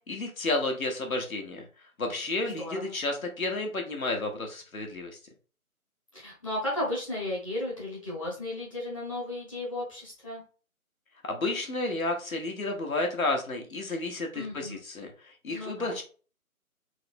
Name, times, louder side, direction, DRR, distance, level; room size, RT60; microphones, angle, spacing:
voice 1, 0.1-1.7 2.0-5.2 11.2-16.0, left 2 dB, 70° left, 2 dB, 1.4 m, -31 dB
voice 2, 2.4-2.9 6.1-10.4 14.3-14.8 15.5-16.0, left 1 dB, 20° left, -5 dB, 1.1 m, -34 dB
3.9 x 3.2 x 3.4 m, 0.38 s
figure-of-eight pair, 160°, 44 cm